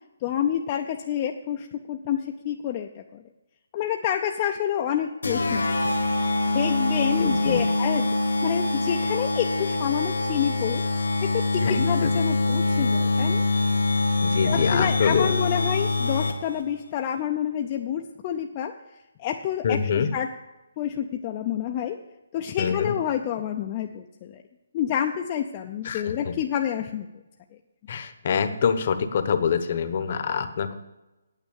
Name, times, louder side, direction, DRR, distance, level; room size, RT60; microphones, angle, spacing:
voice 1, 0.2-2.2 2.4-3.2 3.7-6.0 6.5-8.1 8.4-10.8 11.2-13.4 14.4-18.7 19.2-20.3 20.8-22.0 22.3-24.4 24.7-27.1, left 10 dB, 25° left, 3 dB, 0.5 m, -28 dB
sound 1, 5.2-16.6, left 2 dB, 90° left, 1.8 m, -24 dB
voice 2, 7.2-7.7 11.6-12.1 14.2-15.3 19.6-20.1 22.6-22.9 25.8-26.4 27.9-30.7, left 6 dB, 40° left, 10 dB, 0.9 m, -25 dB
9.1 x 8.2 x 7.1 m, 1.0 s
hypercardioid pair, 170°, 0 cm